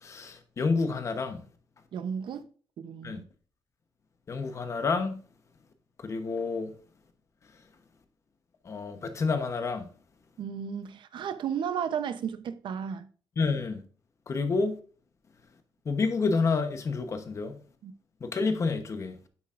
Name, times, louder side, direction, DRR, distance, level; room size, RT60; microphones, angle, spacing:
voice 1, 0.0-1.4 3.0-3.2 4.3-5.2 6.0-6.7 8.6-9.9 13.4-13.8 14.3-14.8 15.8-17.6 18.2-19.2, left 4 dB, 35° left, 1.0 m, -29 dB
voice 2, 1.9-2.5 2.8-3.3 10.4-13.1 17.8-17.9, right 7 dB, 65° right, 0.8 m, -34 dB
9.9 x 7.9 x 2.5 m
wide cardioid pair, 170°, 9 cm